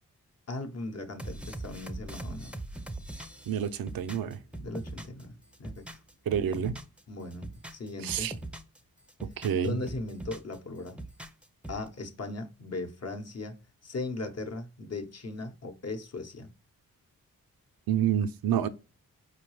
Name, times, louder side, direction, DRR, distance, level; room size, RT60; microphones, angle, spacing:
voice 1, 0.5-2.6 4.6-5.8 7.1-8.3 9.6-11.0 11.7-13.6 13.8-16.5, left 2 dB, 45° left, 0.9 m, -38 dB
sound 1, 1.2-5.2 5.5-7.0 7.3-8.8 9.1-10.5 10.9-11.9, right 2 dB, 5° right, 0.6 m, -41 dB
voice 2, 3.5-4.4 6.3-6.8 8.0-8.3 9.4-9.8 17.9-18.7, right 9 dB, 70° right, 0.5 m, -28 dB
4.6 x 2.2 x 3.1 m
cardioid pair, 45°, 36 cm